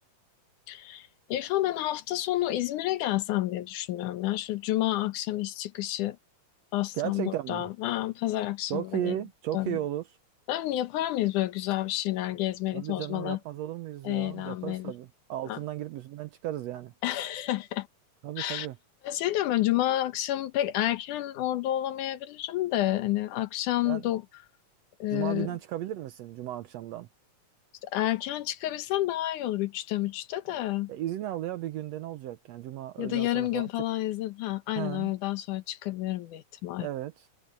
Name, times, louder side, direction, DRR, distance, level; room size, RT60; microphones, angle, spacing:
voice 1, 0.7-6.2 6.7-9.2 9.5-9.8 10.5-13.4 14.0-14.9 15.5-15.6 17.0-17.9 18.4-18.7 19.0-24.2 25.0-25.5 27.8-30.9 33.0-36.9, left 14 dB, 80° left, 2.5 m, -29 dB
voice 2, 6.9-7.7 8.7-10.0 12.7-16.9 18.2-18.8 23.8-24.0 25.1-27.1 30.5-30.6 30.9-33.7 34.8-35.1 36.8-37.1, right 13 dB, 75° right, 1.6 m, -35 dB
omnidirectional pair, 3.6 m